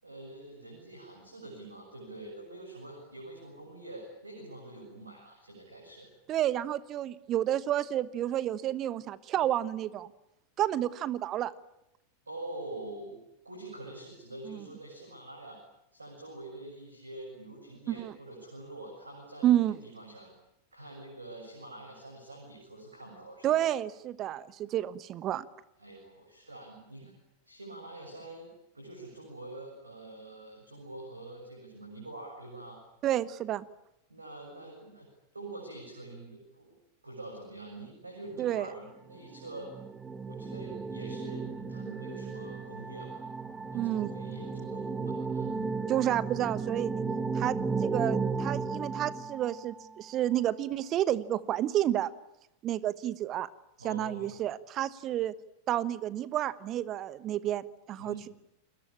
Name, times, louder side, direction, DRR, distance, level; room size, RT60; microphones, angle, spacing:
voice 1, 0.0-6.1 12.3-15.6 15.9-20.3 20.7-23.6 25.8-27.2 27.5-28.5 28.7-32.8 34.1-35.1 35.3-36.8 37.0-39.7 40.3-43.2 43.7-45.5 53.8-54.4 58.0-58.3, right 2 dB, 80° right, 1 dB, 7.3 m, -45 dB
voice 2, 6.3-10.1 10.6-11.5 14.5-14.6 17.9-18.1 19.4-19.7 23.4-25.4 33.0-33.6 38.4-38.7 43.7-44.1 45.9-46.9 47.3-52.1 52.6-53.5 53.8-55.3 55.7-58.1, right 12 dB, 35° right, 18 dB, 1.1 m, -30 dB
sound 1, 39.1-49.9, right 4 dB, 15° right, 1.7 m, -34 dB
30.0 x 22.0 x 8.8 m, 0.82 s
figure-of-eight pair, 90°, 0 cm